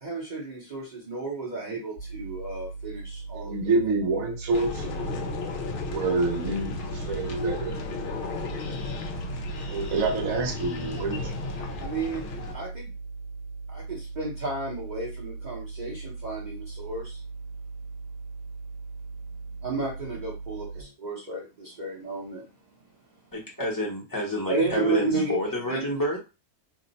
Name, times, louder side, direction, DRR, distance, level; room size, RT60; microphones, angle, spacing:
voice 1, 0.0-3.9 11.8-12.9 13.7-17.2 19.6-22.4 24.5-25.4 25.7-25.9, right 3 dB, 40° right, -4 dB, 0.8 m, -32 dB
sound 1, 2.0-20.8, right 4 dB, 55° left, 0.9 m, -39 dB
voice 2, 3.3-4.9 5.8-7.8 9.5-11.4, right 3 dB, 65° right, 4 dB, 1.1 m, -27 dB
sound 2, 4.5-12.5, left 3 dB, 85° left, 0.4 m, -34 dB
voice 3, 23.3-26.2, left 1 dB, 20° left, -3 dB, 0.6 m, -29 dB
2.8 x 2.1 x 3.9 m, 0.29 s
omnidirectional pair, 1.6 m